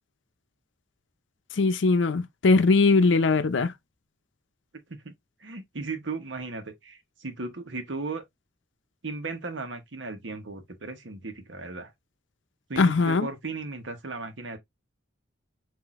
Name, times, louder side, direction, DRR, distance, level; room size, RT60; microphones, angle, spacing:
voice 1, 1.6-3.7 12.8-13.3, left 3 dB, 80° left, 0.5 m, -21 dB
voice 2, 5.4-8.2 9.0-11.9 12.7-14.6, right 3 dB, 80° right, 1.1 m, -36 dB
5.7 x 2.7 x 2.4 m
head